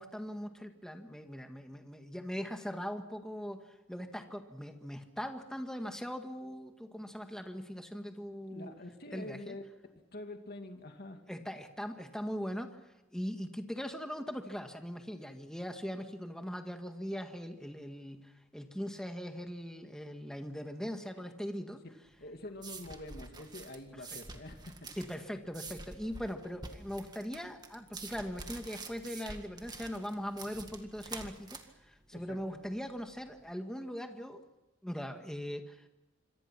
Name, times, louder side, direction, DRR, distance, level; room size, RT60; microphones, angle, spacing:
voice 1, 0.0-3.6 3.9-8.7 9.1-9.5 11.3-12.8 13.1-21.8 25.0-34.4 34.8-35.8, equal, 5° left, 5 dB, 1.7 m, -40 dB
voice 2, 8.4-9.6 10.1-11.2 22.2-24.9 32.1-32.6, left 1 dB, 55° left, 5 dB, 2.4 m, -46 dB
sound 1, 22.1-33.4, right 3 dB, 20° right, 2.0 m, -48 dB
26.5 x 24.0 x 6.0 m, 0.99 s
head